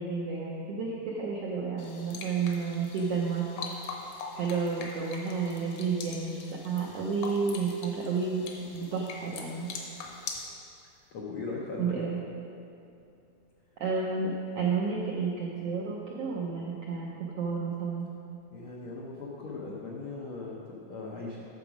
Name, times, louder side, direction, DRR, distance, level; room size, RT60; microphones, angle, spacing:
voice 1, 0.0-3.5 4.4-9.7 11.8-12.2 13.8-18.1, right 5 dB, 80° right, -3 dB, 1.4 m, -31 dB
sound 1, 1.8-10.5, left 4 dB, 70° left, 2.1 m, -43 dB
voice 2, 11.1-12.0 18.5-21.4, left 3 dB, 85° left, -3 dB, 1.1 m, -39 dB
9.0 x 6.9 x 4.9 m, 2.5 s
omnidirectional pair, 3.7 m